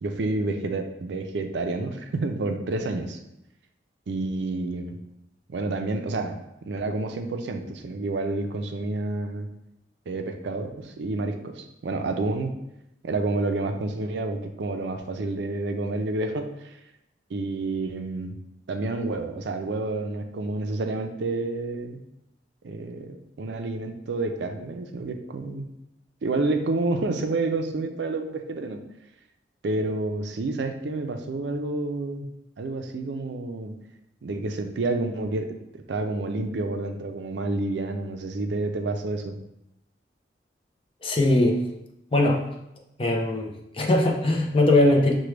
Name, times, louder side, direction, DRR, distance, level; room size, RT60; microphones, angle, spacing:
voice 1, 0.0-3.2 4.1-5.0 5.5-6.4 6.7-9.5 10.1-12.6 13.0-16.8 17.3-18.4 18.7-22.0 22.6-25.7 26.2-28.8 29.6-32.3 32.6-33.7 34.2-39.4, right 2 dB, 75° right, 6 dB, 0.4 m, -29 dB
voice 2, 41.0-41.6 42.1-42.4 43.0-45.1, left 1 dB, 30° left, 0 dB, 0.6 m, -21 dB
5.9 x 2.2 x 3.2 m, 0.86 s
head